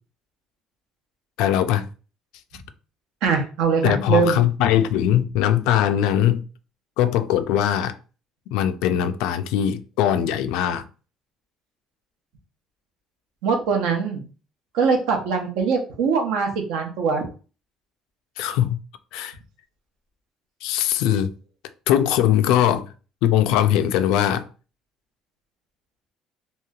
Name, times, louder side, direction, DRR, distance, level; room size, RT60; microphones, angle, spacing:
voice 1, 1.4-1.9 3.8-6.4 7.0-8.0 8.5-10.8 18.4-18.8 19.1-19.3 20.6-21.3 21.9-22.9 23.2-24.5, left 11 dB, 90° left, 0.3 m, -21 dB
voice 2, 3.2-4.4 13.4-14.3 14.7-17.3, right 5 dB, 85° right, 0.8 m, -22 dB
3.1 x 2.8 x 2.4 m
cardioid pair, 160°, 0 cm